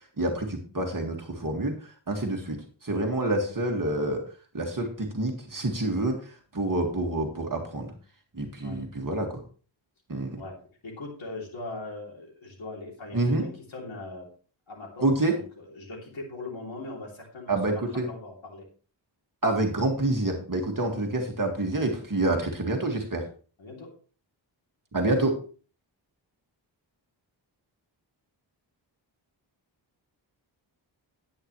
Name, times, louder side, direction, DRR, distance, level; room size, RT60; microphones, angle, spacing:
voice 1, 0.0-4.2 4.5-7.9 8.3-9.4 10.1-10.4 13.1-13.4 15.0-15.3 17.5-18.1 19.4-23.3 24.9-25.4, right 2 dB, 45° right, 2 dB, 2.0 m, -27 dB
voice 2, 10.8-14.3 14.7-15.0 15.3-17.8 18.1-18.6 23.6-23.9, left 2 dB, 75° left, -2 dB, 3.1 m, -40 dB
10.5 x 10.5 x 3.1 m, 0.40 s
wide cardioid pair, 70°, 47 cm